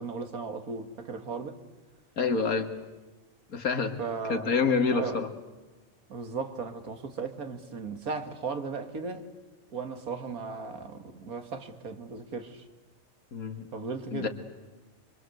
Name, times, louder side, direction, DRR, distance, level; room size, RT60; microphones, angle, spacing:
voice 1, 0.0-1.6 4.0-4.5 4.9-5.2 6.1-9.3 9.7-12.6 13.7-14.3, right 4 dB, 85° right, 2.4 m, -36 dB
voice 2, 2.2-2.7 3.5-4.0 4.3-5.3 13.3-13.7 14.1-14.3, left 5 dB, 80° left, 2.4 m, -27 dB
25.0 x 24.5 x 7.9 m
omnidirectional pair, 1.5 m